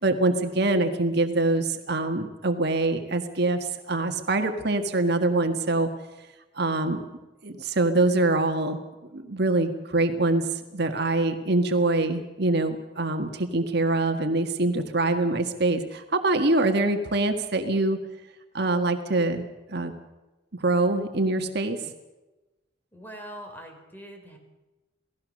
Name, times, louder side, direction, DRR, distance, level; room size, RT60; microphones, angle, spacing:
voice 1, 0.0-5.9 6.6-7.0 7.4-8.8 9.1-18.0 18.5-19.4 19.7-19.9 20.6-21.9, right 2 dB, 60° right, 6 dB, 1.7 m, -24 dB
voice 2, 22.9-24.4, equal, 10° left, 3 dB, 4.0 m, -42 dB
28.5 x 18.0 x 6.5 m, 1.1 s
head